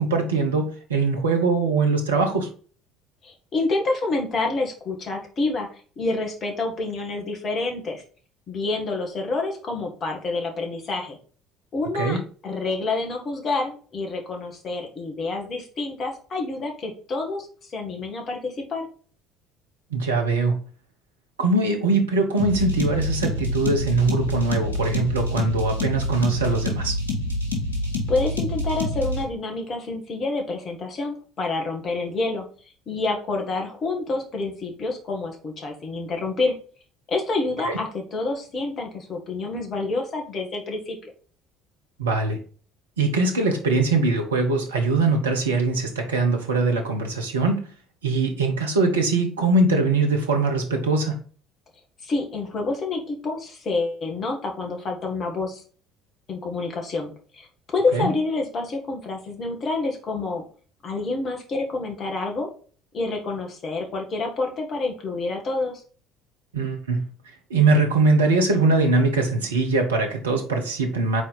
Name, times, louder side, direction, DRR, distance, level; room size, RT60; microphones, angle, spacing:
voice 1, 0.0-2.5 12.0-12.2 19.9-20.6 21.4-27.0 37.6-37.8 42.0-42.4 43.0-47.7 48.0-51.2 57.9-58.1 66.5-67.0 67.5-71.2, right 3 dB, 80° right, 1.1 m, -22 dB
voice 2, 3.2-5.7 6.0-8.0 8.5-11.2 11.7-18.9 28.1-32.5 32.9-36.5 37.1-41.1 52.0-55.6 56.3-60.4 60.8-62.5 62.9-65.8, left 3 dB, 40° left, 1.9 m, -28 dB
sound 1, 22.4-29.2, left 1 dB, 85° left, 1.8 m, -27 dB
4.9 x 4.4 x 5.5 m
figure-of-eight pair, 60°, 0 cm